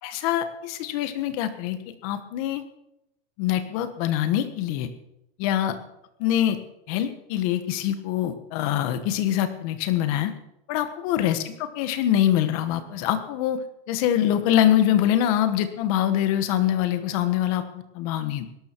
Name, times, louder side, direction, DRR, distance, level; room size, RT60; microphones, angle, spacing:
voice 1, 0.0-2.6 3.4-4.9 5.4-5.7 6.2-6.6 6.9-10.3 10.7-18.5, left 11 dB, 35° left, 10 dB, 1.3 m, -24 dB
20.5 x 12.0 x 4.6 m, 0.82 s
supercardioid pair, 175°, 32 cm